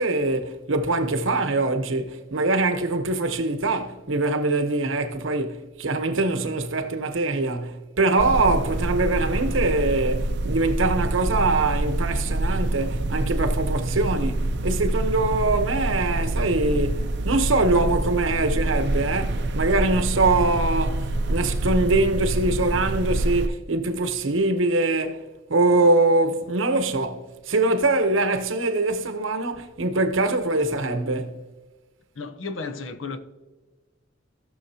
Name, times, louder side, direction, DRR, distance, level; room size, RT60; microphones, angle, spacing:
voice 1, 0.0-25.2 25.5-31.4, right 2 dB, 80° right, 0.9 m, -23 dB
sound 1, 8.2-23.5, right 1 dB, 60° right, 0.6 m, -26 dB
voice 2, 32.2-33.2, left 4 dB, 75° left, 0.8 m, -33 dB
17.5 x 6.4 x 2.8 m
head